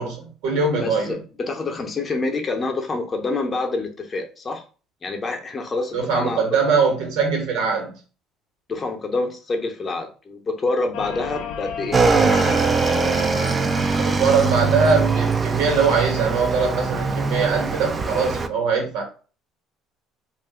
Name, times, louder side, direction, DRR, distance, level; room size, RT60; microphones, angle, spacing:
voice 1, 0.0-1.2 5.9-8.0 14.0-19.0, right 5 dB, 80° right, 2 dB, 1.2 m, -22 dB
voice 2, 0.8-4.6 5.0-6.6 8.7-12.0, left 3 dB, 30° left, 4 dB, 0.7 m, -27 dB
sound 1, 10.9-16.0 17.1-17.6, left 7 dB, 80° left, 0.4 m, -33 dB
Motorcycle / Engine, 11.9-18.5, right 4 dB, 25° right, 0.3 m, -21 dB
2.6 x 2.4 x 3.6 m, 0.37 s
cardioid pair, 110°, 0 cm